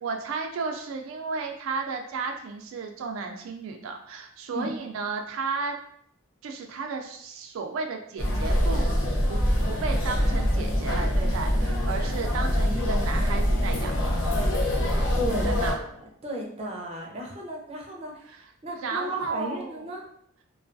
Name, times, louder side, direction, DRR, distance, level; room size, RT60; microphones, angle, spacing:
voice 1, 0.0-5.8 6.4-8.9 9.3-13.9 15.4-15.8 18.3-19.9, right 4 dB, 85° right, 4 dB, 0.3 m, -33 dB
sound 1, 8.2-15.7, equal, 70° left, 0.6 m, -24 dB
voice 2, 15.1-15.8 16.2-18.2 18.6-20.0, equal, 30° right, -2 dB, 0.5 m, -33 dB
2.3 x 2.3 x 2.5 m, 0.67 s
head